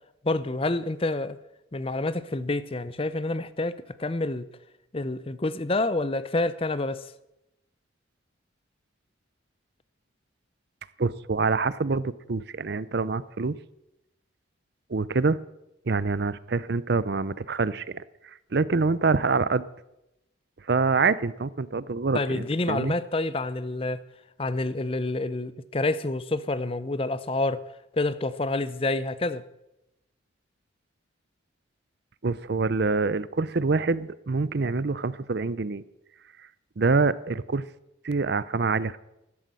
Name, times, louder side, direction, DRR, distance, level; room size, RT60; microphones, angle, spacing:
voice 1, 0.2-1.4 1.7-4.4 4.9-7.1 22.1-24.0 24.4-27.6 27.9-29.4, left 2 dB, 30° left, 0.6 m, -28 dB
voice 2, 11.0-13.6 14.9-15.4 15.9-18.0 18.5-19.6 20.7-22.9 32.2-35.8 36.8-37.6 38.0-39.0, right 4 dB, 55° right, 0.5 m, -25 dB
13.5 x 11.5 x 7.6 m
head